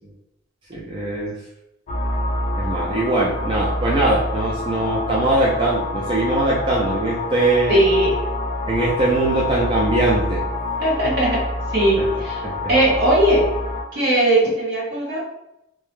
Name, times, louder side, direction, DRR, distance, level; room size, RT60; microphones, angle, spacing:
voice 1, 0.7-1.3 2.6-7.8 8.7-10.4 12.0-12.1 12.4-12.5, right 2 dB, 25° right, -6 dB, 0.4 m, -21 dB
sound 1, 1.9-13.8, left 2 dB, 40° left, 0.4 m, -27 dB
voice 2, 7.7-8.2 10.8-11.4 11.7-12.4 12.7-13.5 13.9-15.2, right 1 dB, 60° right, -6 dB, 0.9 m, -18 dB
2.2 x 2.0 x 3.0 m, 0.85 s
head